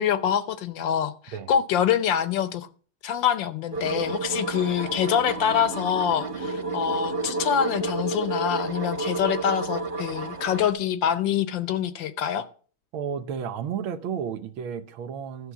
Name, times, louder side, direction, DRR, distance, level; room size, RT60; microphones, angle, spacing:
voice 1, 0.0-2.7 3.0-12.5, left 9 dB, 70° left, 1.3 m, -25 dB
sound 1, 3.7-10.7, right 3 dB, 40° right, 0.9 m, -31 dB
voice 2, 12.9-15.5, right 7 dB, 75° right, 1.7 m, -32 dB
13.0 x 6.4 x 7.2 m
omnidirectional pair, 2.3 m